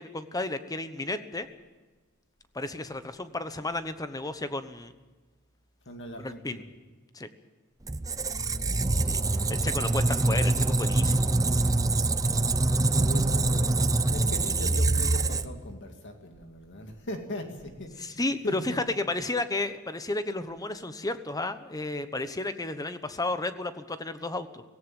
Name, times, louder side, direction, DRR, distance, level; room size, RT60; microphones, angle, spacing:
voice 1, 0.0-1.5 2.5-4.9 6.2-6.6 7.1-7.3 9.0-9.2 9.5-11.3 18.0-24.6, left 2 dB, 15° left, 11 dB, 1.1 m, -32 dB
voice 2, 5.9-6.6 8.2-9.1 12.7-18.9, left 1 dB, 55° left, 4 dB, 2.2 m, -40 dB
Squeak, 7.9-15.7, right 2 dB, 15° right, 0.6 m, -25 dB
18.0 x 17.0 x 9.1 m, 1.2 s
head